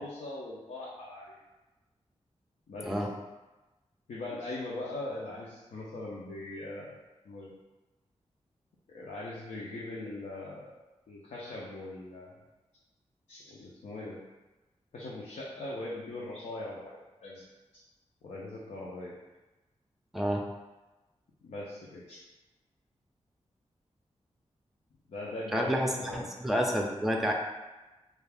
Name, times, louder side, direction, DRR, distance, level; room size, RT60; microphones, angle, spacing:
voice 1, 0.0-1.4 2.7-2.9 4.1-6.9 7.2-7.5 8.9-10.7 11.1-12.4 13.3-14.2 14.9-17.4 18.2-19.1 21.4-22.2 25.1-25.7 26.0-26.2, left 2 dB, 85° left, -6 dB, 0.5 m, -40 dB
voice 2, 25.5-27.3, equal, ahead, 0 dB, 0.4 m, -29 dB
2.5 x 2.3 x 3.4 m, 1.1 s
cardioid pair, 60°, 12 cm